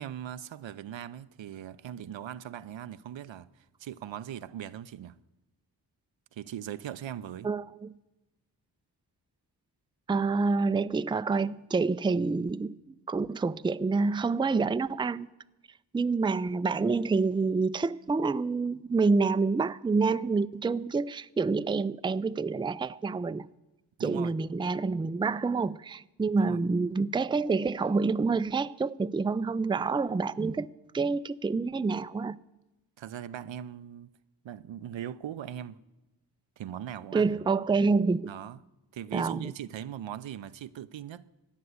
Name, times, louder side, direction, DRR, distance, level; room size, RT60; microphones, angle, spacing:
voice 1, 0.0-5.2 6.3-7.5 24.0-24.4 26.4-26.6 33.0-34.1 34.4-35.8 36.6-37.4 38.3-38.6 38.9-41.3, right 10 dB, 80° right, 0.7 m, -40 dB
voice 2, 7.4-7.9 10.1-15.3 15.9-23.5 24.0-30.7 30.9-32.4 37.1-38.3 39.1-39.5, right 4 dB, 10° right, 0.4 m, -27 dB
14.5 x 9.6 x 9.4 m
cardioid pair, 45°, 44 cm